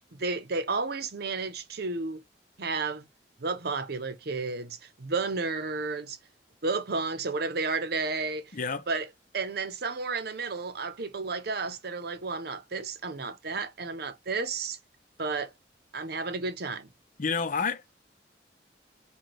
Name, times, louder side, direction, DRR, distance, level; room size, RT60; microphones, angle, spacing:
voice 1, 0.0-2.2 2.6-3.1 3.4-6.2 6.6-8.6 8.9-9.1 9.3-14.8 15.2-15.5 15.9-16.9, right 4 dB, 60° right, 0.8 m, -32 dB
voice 2, 8.5-8.8 17.2-17.9, left 5 dB, 50° left, 0.6 m, -29 dB
4.8 x 2.3 x 4.1 m
head